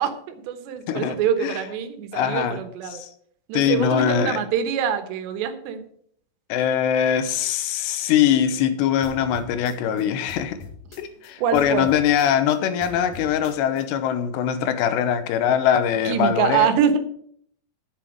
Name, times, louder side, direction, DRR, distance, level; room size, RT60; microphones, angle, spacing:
voice 1, 0.0-3.0 3.5-5.8 11.4-11.9 16.1-17.0, right 8 dB, 90° right, 3.4 m, -24 dB
voice 2, 2.1-2.6 2.9-3.1 3.5-4.4 6.5-10.6 11.0-16.7, left 9 dB, 85° left, 3.0 m, -22 dB
sound 1, 9.0-11.3 11.5-13.8, left 6 dB, 55° left, 2.5 m, -42 dB
10.0 x 8.1 x 6.4 m
omnidirectional pair, 4.9 m